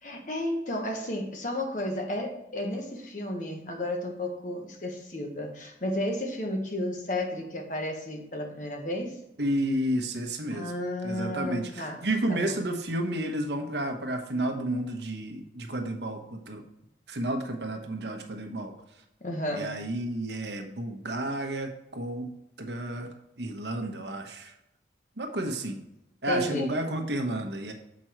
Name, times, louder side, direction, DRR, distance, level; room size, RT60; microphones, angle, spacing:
voice 1, 0.0-9.2 10.5-12.5 19.2-19.7 26.2-26.7, left 1 dB, 45° left, 2 dB, 1.3 m, -32 dB
voice 2, 9.4-10.7 11.0-16.6 17.1-18.7 19.5-22.3 22.6-23.1 23.4-24.5 25.2-25.8 26.2-27.7, right 1 dB, 75° right, 4 dB, 1.1 m, -31 dB
7.6 x 5.3 x 4.5 m, 0.85 s
head